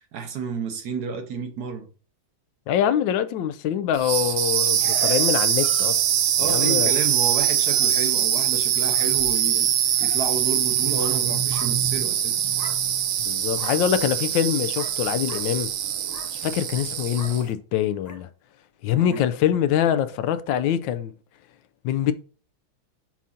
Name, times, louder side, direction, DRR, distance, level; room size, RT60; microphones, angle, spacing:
voice 1, 0.1-1.9 6.4-9.7 10.0-12.4 18.9-19.2, right 6 dB, 60° right, 1.3 m, -31 dB
voice 2, 2.7-6.0 6.4-6.9 13.2-15.7 16.3-18.3 18.8-21.1 21.8-22.1, left 10 dB, 75° left, 1.2 m, -24 dB
sound 1, 3.9-17.5, right 10 dB, 90° right, 1.7 m, -23 dB
sound 2, 10.6-11.2 11.5-11.7 12.6-12.8 13.5-13.8 14.7-15.0 15.3-15.5 16.0-16.3 17.1-17.4 18.0-18.2 19.1-19.3, left 2 dB, 30° left, 0.8 m, -41 dB
7.3 x 2.7 x 5.7 m
omnidirectional pair, 2.3 m